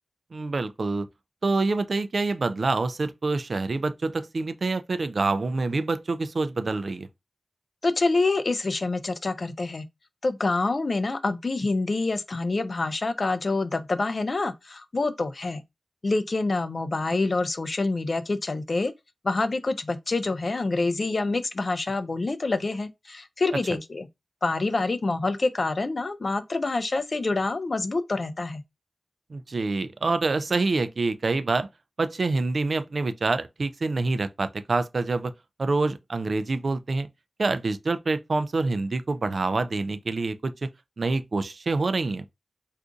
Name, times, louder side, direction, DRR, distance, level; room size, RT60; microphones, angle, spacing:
voice 1, 0.3-1.1 1.4-7.1 29.3-31.7 32.0-35.3 35.6-37.1 37.4-40.5 41.0-42.2, right 3 dB, 55° right, 0.3 m, -26 dB
voice 2, 7.8-9.9 10.2-15.6 16.0-18.9 19.2-24.1 24.4-28.6, left 3 dB, 45° left, 0.4 m, -26 dB
2.5 x 2.4 x 3.7 m
wide cardioid pair, 115°, 0 cm